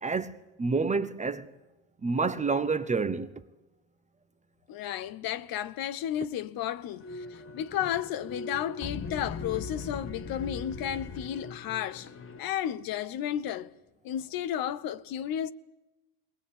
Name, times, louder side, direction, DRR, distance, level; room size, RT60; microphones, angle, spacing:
voice 1, 0.0-1.5 2.0-3.3, right 4 dB, 15° right, 0.9 m, -28 dB
voice 2, 4.7-12.1 12.4-13.7 14.0-15.5, left 10 dB, 45° left, 0.9 m, -33 dB
sound 1, 7.0-12.4, left 4 dB, 25° left, 1.3 m, -40 dB
21.0 x 19.5 x 8.7 m
supercardioid pair, 105°, 47 cm